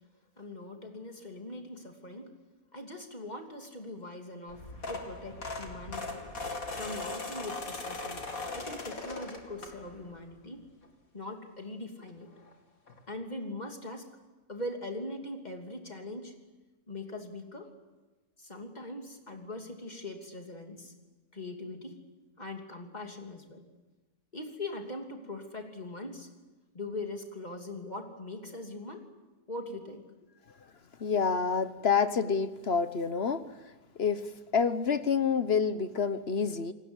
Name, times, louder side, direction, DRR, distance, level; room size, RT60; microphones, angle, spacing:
voice 1, 0.4-2.3 2.7-6.2 6.7-8.3 8.5-10.6 11.1-12.3 13.1-14.1 14.5-16.3 16.9-17.7 18.4-20.9 21.3-22.0 22.4-23.6 24.3-26.3 26.7-29.0 29.5-30.0, left 2 dB, 30° left, 3 dB, 3.0 m, -41 dB
Propellor Jam, 4.5-10.1 10.6-10.9 12.1-12.2 12.4-12.5 12.9-13.0, left 3 dB, 75° left, 3.0 m, -39 dB
voice 2, 31.0-33.4 34.0-34.3 34.5-36.7, left 6 dB, 50° left, 12 dB, 1.2 m, -28 dB
29.0 x 19.5 x 8.1 m, 1.2 s
omnidirectional pair, 1.5 m